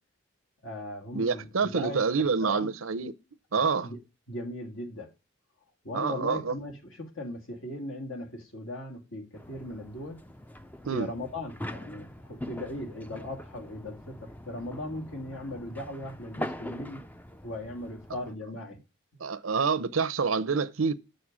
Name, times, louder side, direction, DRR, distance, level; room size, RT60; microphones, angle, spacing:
voice 1, 0.6-2.7 3.8-4.0 4.3-5.1 5.8-10.2 10.9-17.0 17.4-18.8, left 1 dB, 75° left, 2.3 m, -38 dB
voice 2, 1.1-3.1 3.5-3.9 5.9-6.5 10.8-11.1 19.2-20.9, right 5 dB, 85° right, 0.7 m, -27 dB
sound 1, 9.3-18.3, left 1 dB, 10° left, 0.4 m, -42 dB
6.7 x 6.4 x 7.3 m
head